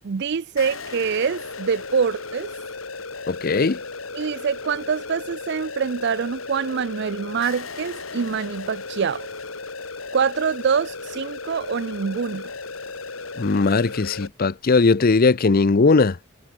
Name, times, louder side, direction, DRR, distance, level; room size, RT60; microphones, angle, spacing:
voice 1, 0.0-2.5 4.1-9.3 10.1-12.5, right 6 dB, 55° right, 0.5 m, -25 dB
sound 1, 0.6-14.3, left 3 dB, 90° left, 4.9 m, -35 dB
voice 2, 3.3-3.8 13.4-16.2, left 3 dB, 45° left, 0.6 m, -18 dB
head